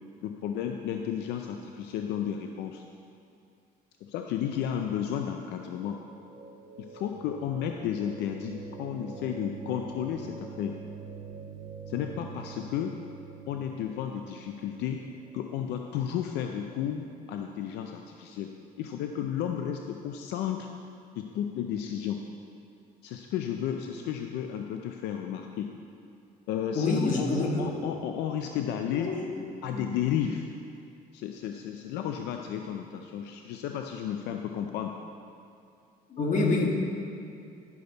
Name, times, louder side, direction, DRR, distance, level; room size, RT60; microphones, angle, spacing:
voice 1, 0.2-2.8 4.0-6.0 6.8-10.8 11.9-12.9 13.5-15.0 15.3-18.5 18.8-20.7 21.1-22.2 23.0-25.7 26.5-29.1 29.6-30.4 31.1-35.0, left 9 dB, 85° left, 4 dB, 0.5 m, -33 dB
sound 1, 5.6-17.7, right 4 dB, 60° right, 1.8 m, -46 dB
voice 2, 26.7-27.7 28.9-29.4 29.7-29.9 36.1-36.7, left 2 dB, 50° left, -1 dB, 1.5 m, -27 dB
11.0 x 6.7 x 4.0 m, 2.5 s
cardioid pair, 110°, 17 cm